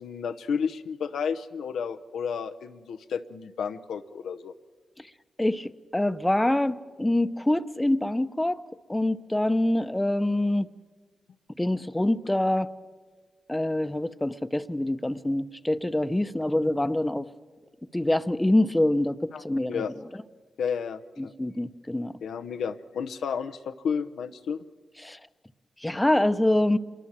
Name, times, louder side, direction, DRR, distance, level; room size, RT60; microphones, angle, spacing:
voice 1, 0.0-4.5 19.3-19.9 20.6-21.3 22.2-24.6, left 6 dB, 85° left, 7 dB, 0.8 m, -32 dB
voice 2, 5.4-8.6 8.9-10.7 11.6-12.7 13.5-17.3 17.9-19.8 21.2-22.1 25.0-25.2 25.8-26.8, left 1 dB, 15° left, 11 dB, 0.9 m, -25 dB
26.0 x 22.0 x 7.4 m, 1.5 s
cardioid pair, 50°, 0 cm